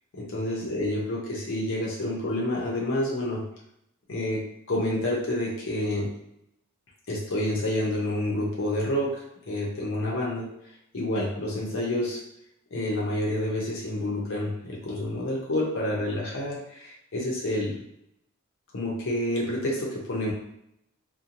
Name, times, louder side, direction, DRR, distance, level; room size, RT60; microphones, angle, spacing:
voice 1, 0.1-3.4 4.1-6.1 7.1-10.5 10.9-12.2 12.7-17.8 18.7-20.3, left 1 dB, 65° left, -4 dB, 0.6 m, -28 dB
2.8 x 2.1 x 2.5 m, 0.76 s
head